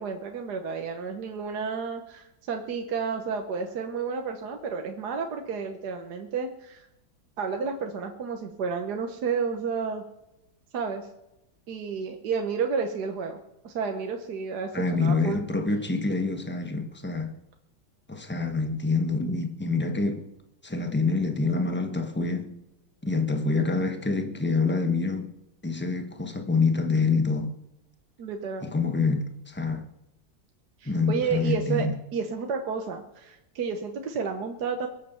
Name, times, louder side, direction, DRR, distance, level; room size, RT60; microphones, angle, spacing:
voice 1, 0.0-6.9 7.4-10.0 10.7-11.1 11.7-13.4 13.6-14.7 15.0-15.4 28.2-28.7 30.8-31.9 32.1-34.9, right 5 dB, 65° right, 1.6 m, -31 dB
voice 2, 14.7-17.3 18.1-20.2 20.6-22.5 23.0-25.3 25.6-27.5 28.6-29.8 30.8-31.9, left 4 dB, 5° left, 1.0 m, -26 dB
22.5 x 7.6 x 6.9 m
omnidirectional pair, 2.0 m